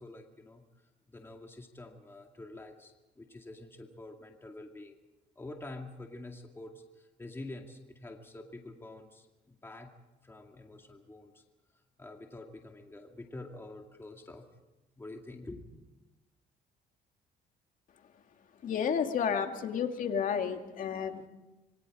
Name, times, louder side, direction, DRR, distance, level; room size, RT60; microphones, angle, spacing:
voice 1, 0.0-5.0 5.4-9.9 10.2-11.4 12.0-14.5 15.0-15.7, left 2 dB, 15° left, 2 dB, 2.3 m, -47 dB
voice 2, 18.6-21.3, left 7 dB, 50° left, 5 dB, 2.4 m, -31 dB
27.0 x 23.0 x 5.0 m, 1.0 s
cardioid pair, 110°, 17 cm